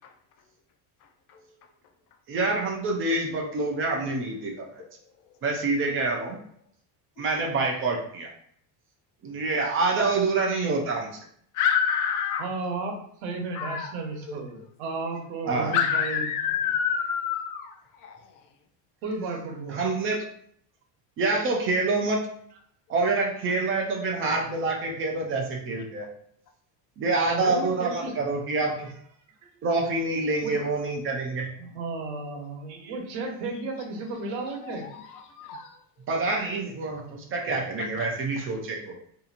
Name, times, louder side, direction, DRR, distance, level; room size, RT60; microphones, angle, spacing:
voice 1, 2.3-4.8 5.4-6.4 7.2-8.3 9.2-11.1 15.5-15.7 19.7-20.3 21.2-22.3 22.9-26.1 27.0-28.9 29.6-31.5 36.1-38.9, right 3 dB, 30° right, 1 dB, 0.4 m, -26 dB
voice 2, 11.6-12.5 13.5-13.9 14.2-14.4 15.7-18.2 30.6-30.7 34.6-35.8 37.8-38.1, left 7 dB, 45° left, 3 dB, 0.6 m, -28 dB
voice 3, 12.4-16.2 19.0-19.8 27.3-28.1 30.4-30.5 31.6-34.9, right 3 dB, 75° right, 2 dB, 1.0 m, -33 dB
4.0 x 2.8 x 2.5 m, 0.65 s
cardioid pair, 175°, 46 cm